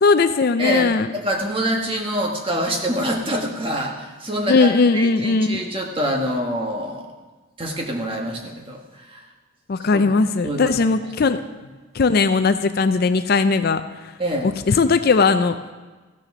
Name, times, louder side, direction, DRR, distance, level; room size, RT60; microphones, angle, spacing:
voice 1, 0.0-1.1 4.5-5.6 9.7-11.4 11.9-13.8 14.4-15.6, left 4 dB, 45° left, 10 dB, 0.4 m, -18 dB
voice 2, 0.6-7.1 7.6-9.3 9.9-10.1 10.4-11.3 14.2-14.5, equal, 25° right, 1 dB, 1.4 m, -26 dB
14.5 x 6.9 x 6.0 m, 1.3 s
head